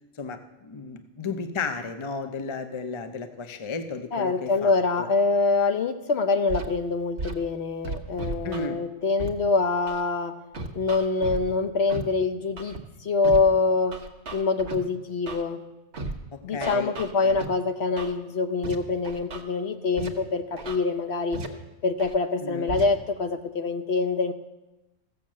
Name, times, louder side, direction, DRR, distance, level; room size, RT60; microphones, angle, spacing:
voice 1, 0.2-5.1 8.4-8.8 16.3-16.9 17.2-17.4 22.4-22.7, left 4 dB, 30° left, 8 dB, 0.6 m, -34 dB
voice 2, 4.1-10.4 10.7-14.0 14.3-15.6 16.4-21.4 21.8-24.3, left 3 dB, 55° left, 8 dB, 0.9 m, -25 dB
Scratching (performance technique), 6.5-6.7 7.2-7.3 7.8-8.7 9.2-9.3 9.9-10.0 10.5-11.4 11.9-12.0 12.6-12.8 13.2-13.4 13.9-14.8 15.3-15.4 15.9-16.1 16.6-17.5 18.0-18.1 18.6-18.8 19.0-19.4 20.0-20.1 20.6-20.8 21.3-21.5 22.0-22.1 22.7-22.8, right 3 dB, 55° right, 1.4 m, -34 dB
15.5 x 6.6 x 7.4 m, 1.0 s
omnidirectional pair, 1.4 m